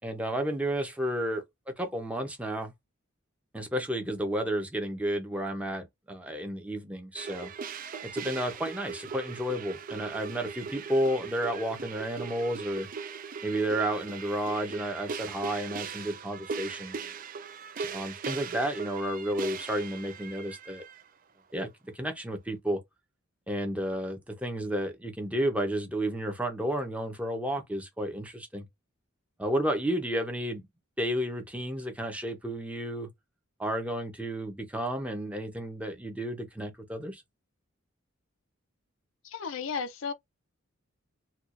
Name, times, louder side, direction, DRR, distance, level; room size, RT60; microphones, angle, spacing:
voice 1, 0.0-1.4 1.8-2.7 3.5-7.5 8.0-12.9 13.4-17.0 17.9-20.8 21.5-22.8 23.5-28.6 29.4-30.7 31.0-33.1 33.6-37.2, right 1 dB, 5° right, 0.7 m, -32 dB
sound 1, 7.2-21.0, right 5 dB, 40° right, 0.4 m, -39 dB
voice 2, 39.2-40.1, left 5 dB, 65° left, 0.5 m, -34 dB
4.3 x 2.3 x 2.5 m
head